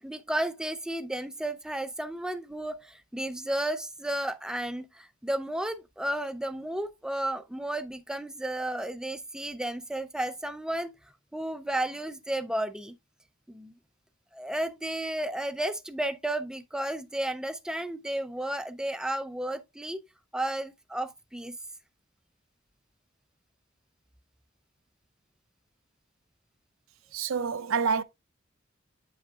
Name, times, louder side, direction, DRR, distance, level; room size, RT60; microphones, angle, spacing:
voice 1, 0.0-10.9 11.3-13.0 13.5-13.7 14.3-20.0 20.3-21.6, right 1 dB, 5° right, 0.4 m, -33 dB
voice 2, 27.1-28.0, right 5 dB, 80° right, 0.5 m, -27 dB
8.6 x 5.7 x 2.3 m
head